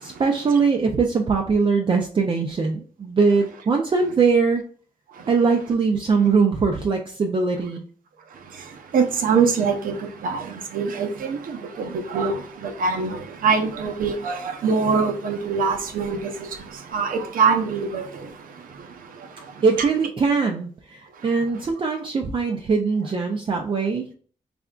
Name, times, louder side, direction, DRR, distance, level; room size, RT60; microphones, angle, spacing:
voice 1, 0.0-4.6 5.3-7.8 19.6-24.1, right 4 dB, 35° right, 0.5 m, -21 dB
voice 2, 8.9-9.9 10.2-10.5 10.7-12.4 12.6-16.2 16.9-18.0, right 5 dB, 85° right, 0.7 m, -23 dB
3.6 x 3.4 x 2.3 m
wide cardioid pair, 130°, 14 cm